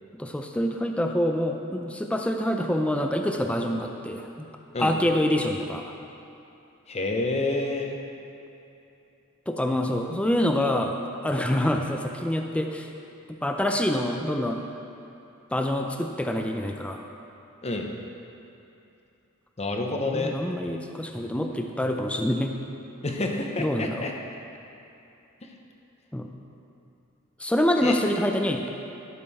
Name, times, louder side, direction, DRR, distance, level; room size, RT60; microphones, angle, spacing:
voice 1, 0.1-4.5 4.8-5.9 9.5-10.9 11.2-12.9 13.3-14.6 15.5-17.0 20.1-22.6 23.6-24.1 26.1-26.3 27.4-28.7, left 1 dB, 5° left, 3 dB, 0.5 m, -26 dB
voice 2, 6.9-8.0 17.6-17.9 19.6-20.4 23.0-24.1 27.8-27.9, left 2 dB, 30° left, 2 dB, 0.8 m, -28 dB
12.0 x 6.7 x 4.2 m, 2.8 s
head